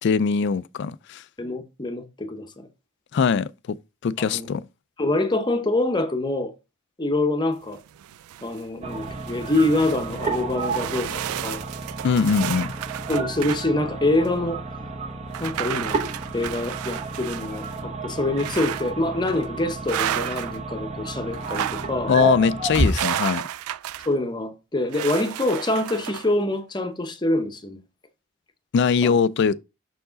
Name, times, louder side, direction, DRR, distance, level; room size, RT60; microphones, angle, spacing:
voice 1, 0.0-1.2 3.1-3.8 4.0-4.7 12.0-12.7 22.1-23.4 28.7-29.5, left 6 dB, 50° left, 0.3 m, -21 dB
voice 2, 1.4-2.7 4.2-4.5 5.0-6.5 7.0-7.8 8.4-11.6 13.1-14.6 15.4-16.0 16.3-22.1 24.1-27.8 29.0-29.2, left 2 dB, 20° left, 0.8 m, -25 dB
sound 1, 7.7-8.6 9.0-13.7 14.3-14.4 15.3-17.8 18.4-18.9 19.3-19.5 19.9-20.6 21.3-21.9 22.7-24.1 24.9-26.3, right 11 dB, 80° right, 0.3 m, -32 dB
sound 2, 8.8-22.9, right 3 dB, 30° right, 0.8 m, -31 dB
6.5 x 4.6 x 3.9 m
head